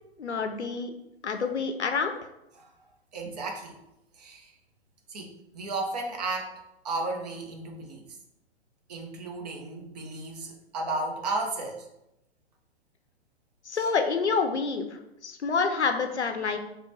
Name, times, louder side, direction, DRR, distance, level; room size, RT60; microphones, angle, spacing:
voice 1, 0.2-0.9 1.2-2.2 13.7-15.0 15.2-16.6, left 5 dB, 80° left, 6 dB, 0.5 m, -27 dB
voice 2, 3.1-3.8 4.2-4.5 5.1-8.1 8.9-11.9 13.7-13.9, right 2 dB, 40° right, 1 dB, 0.7 m, -34 dB
5.7 x 2.2 x 2.7 m, 0.87 s
figure-of-eight pair, 120°, 33 cm